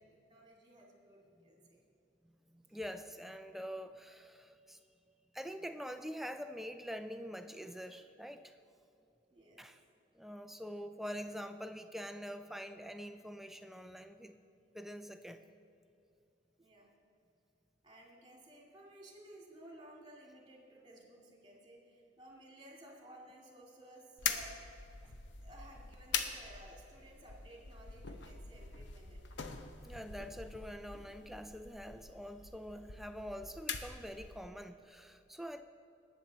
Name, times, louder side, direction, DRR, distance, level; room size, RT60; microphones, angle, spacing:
voice 1, 0.0-1.8 3.6-3.7 9.3-9.6 16.6-16.9 17.8-24.5 25.4-29.4, right 1 dB, 25° right, -2 dB, 2.3 m, -56 dB
voice 2, 2.5-4.8 5.3-8.6 9.6-9.8 10.1-14.4 14.7-15.4 25.0-25.1 29.8-35.6, equal, ahead, 8 dB, 0.4 m, -45 dB
sound 1, 24.2-34.5, left 6 dB, 65° left, 0.8 m, -43 dB
19.0 x 7.3 x 4.1 m, 2.7 s
head